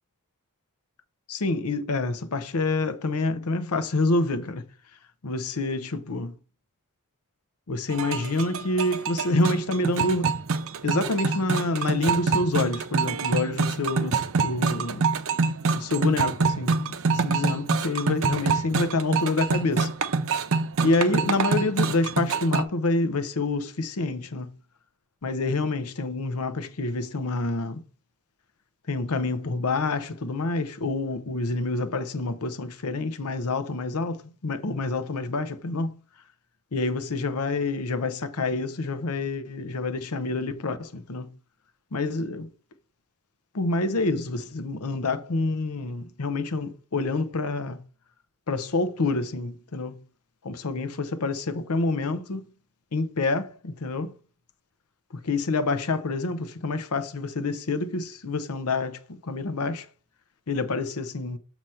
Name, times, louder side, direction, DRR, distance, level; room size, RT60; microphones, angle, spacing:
voice 1, 1.3-4.6 5.2-6.3 7.7-10.4 10.8-15.1 15.7-19.9 20.8-24.5 25.2-27.8 28.9-36.0 36.7-41.3 41.9-42.5 43.5-47.8 48.5-50.0 50.4-52.5 52.9-54.1 55.2-59.9 60.5-61.4, left 3 dB, 80° left, 0.7 m, -27 dB
sound 1, 7.9-22.6, right 4 dB, 65° right, 0.6 m, -26 dB
7.6 x 3.0 x 5.5 m
head